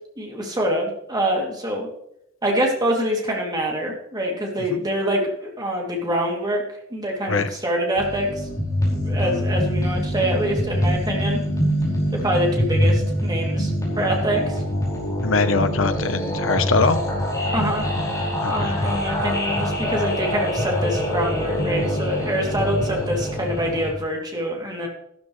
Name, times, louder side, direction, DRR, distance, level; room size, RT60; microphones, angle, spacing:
voice 1, 0.2-1.9 2.4-6.6 6.9-8.5 8.9-11.4 12.1-13.7 14.0-14.6 17.5-17.9 18.5-24.9, equal, 20° right, -1 dB, 2.9 m, -25 dB
sound 1, 8.0-23.9, equal, 15° left, 5.4 m, -24 dB
voice 2, 15.2-17.0 18.4-18.7, left 4 dB, 75° left, 10 dB, 1.0 m, -22 dB
13.0 x 13.0 x 3.3 m, 0.74 s
head